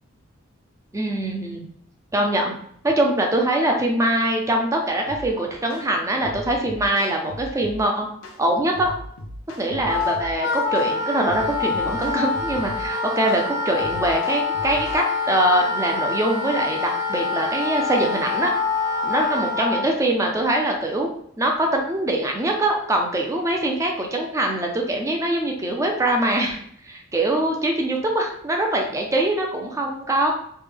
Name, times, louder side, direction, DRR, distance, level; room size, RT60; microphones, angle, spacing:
voice 1, 0.9-1.7 2.1-2.6 2.8-8.1 8.4-8.9 9.6-18.5 19.0-21.1 21.4-26.6 26.8-30.3, right 1 dB, 15° right, 1 dB, 0.4 m, -23 dB
sound 1, 5.1-5.3 5.7-5.9 6.2-7.8 8.2-8.4 8.7-10.3 10.8-10.9 11.3-12.9 13.3-13.5 13.8-15.0, equal, 90° left, 0.6 m, -37 dB
Wind instrument woodwind instrument, 9.9-19.9, left 4 dB, 50° left, 0.7 m, -26 dB
3.2 x 2.2 x 3.4 m, 0.66 s
head